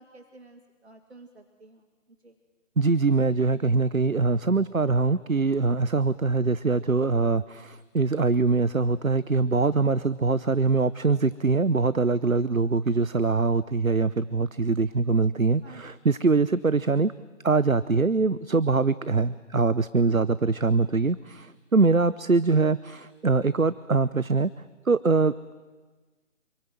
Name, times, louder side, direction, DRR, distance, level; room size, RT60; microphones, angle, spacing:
voice 1, 0.0-1.9 2.2-2.4 15.6-15.8, right 2 dB, 55° right, 6 dB, 2.3 m, -51 dB
voice 2, 2.8-17.1 17.4-24.5 24.9-25.5, right 4 dB, 90° right, 17 dB, 0.9 m, -23 dB
27.5 x 23.0 x 9.2 m, 1.3 s
figure-of-eight pair, 155°, 40 cm